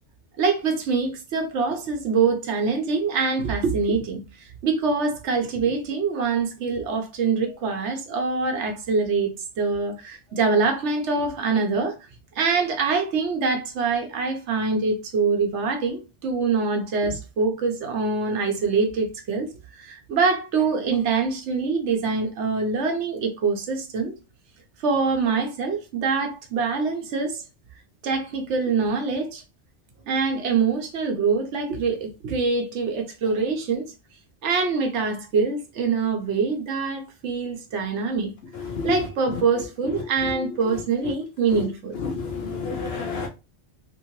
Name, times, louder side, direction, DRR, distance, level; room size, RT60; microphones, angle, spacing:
voice 1, 0.4-11.9 12.4-19.5 19.8-24.2 24.8-27.4 28.0-29.4 30.1-33.9 34.4-38.3 38.8-42.0, right 4 dB, 85° right, 1.0 m, -24 dB
voice 2, 42.0-43.3, left 4 dB, 70° left, 0.8 m, -30 dB
2.9 x 2.8 x 2.8 m
omnidirectional pair, 1.1 m